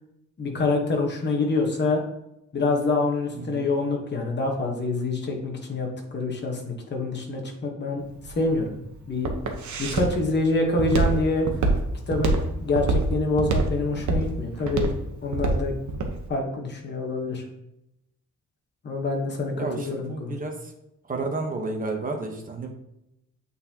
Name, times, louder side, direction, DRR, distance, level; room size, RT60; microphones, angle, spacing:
voice 1, 0.4-2.0 2.5-8.8 9.1-9.3 9.8-11.5 12.1-14.9 15.2-15.7 16.3-17.4 18.8-20.4, left 3 dB, 35° left, 1 dB, 1.2 m, -26 dB
Walk footsteps, 8.0-16.2, right 3 dB, 65° right, 1.0 m, -25 dB
voice 2, 19.6-20.7 21.0-22.7, right 3 dB, 25° right, 2 dB, 1.0 m, -31 dB
8.5 x 4.1 x 2.8 m, 0.86 s
wide cardioid pair, 155°, 31 cm